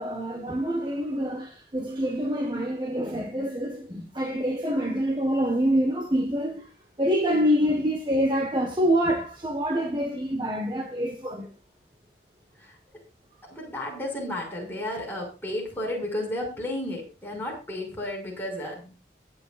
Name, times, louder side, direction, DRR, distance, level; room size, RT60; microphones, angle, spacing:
voice 1, 0.0-6.7 7.0-11.5, equal, 25° right, 1.3 m, -26 dB
voice 2, 13.5-19.0, left 1 dB, 10° left, 5.9 m, -33 dB
23.0 x 8.4 x 2.5 m
head